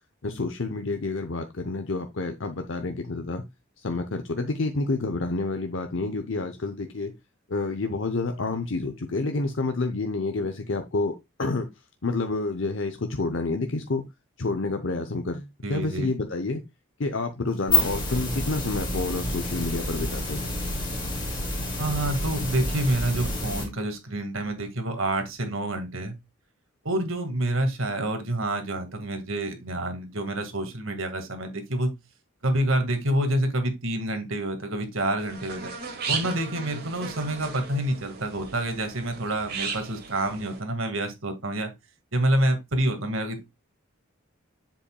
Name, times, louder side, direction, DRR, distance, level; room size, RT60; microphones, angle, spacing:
voice 1, 0.2-3.4 3.8-7.1 7.5-11.1 11.4-11.7 12.0-14.0 14.4-16.6 17.0-20.5, left 3 dB, 60° left, 0.8 m, -29 dB
voice 2, 15.6-16.1 21.8-26.2 26.8-31.9 32.4-35.7 36.1-41.7 42.1-43.4, right 1 dB, 65° right, 1.9 m, -27 dB
sound 1, 17.5-23.6, left 2 dB, 20° left, 2.5 m, -29 dB
sound 2, 35.2-40.6, right 5 dB, 45° right, 1.9 m, -36 dB
7.8 x 7.1 x 2.3 m
head